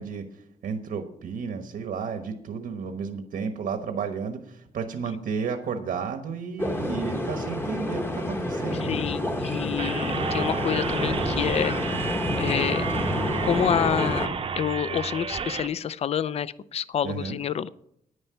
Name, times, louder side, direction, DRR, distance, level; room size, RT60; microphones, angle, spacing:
voice 1, 0.0-9.0 17.0-17.4, right 6 dB, 80° right, 6 dB, 1.1 m, -32 dB
sound 1, 6.6-14.3, left 1 dB, 15° left, 1.0 m, -28 dB
voice 2, 8.8-11.7 12.4-12.9 13.4-17.7, left 9 dB, 45° left, 18 dB, 0.4 m, -28 dB
sound 2, 9.8-15.7, right 5 dB, 40° right, 0.7 m, -31 dB
9.9 x 9.7 x 5.7 m, 0.74 s
wide cardioid pair, 175°, 15 cm